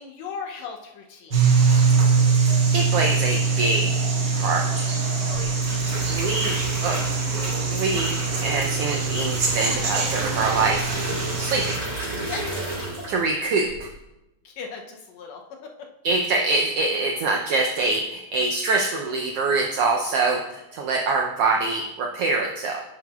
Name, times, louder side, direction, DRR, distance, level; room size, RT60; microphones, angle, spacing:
voice 1, 0.0-1.4 5.3-5.5 12.3-12.4 14.5-15.4 15.8-15.9, left 5 dB, 75° left, 2 dB, 1.8 m, -37 dB
sound 1, 1.3-11.8, right 5 dB, 55° right, 1.2 m, -23 dB
voice 2, 2.7-3.9 4.3-4.9 6.1-7.0 7.5-10.9 11.4-11.8 13.1-13.9 16.0-22.8, right 3 dB, 80° right, 1 dB, 1.3 m, -24 dB
sound 2, 5.3-13.3 13.6-14.0, right 2 dB, 35° right, 3.7 m, -32 dB
10.5 x 7.8 x 2.3 m, 0.95 s
omnidirectional pair, 3.4 m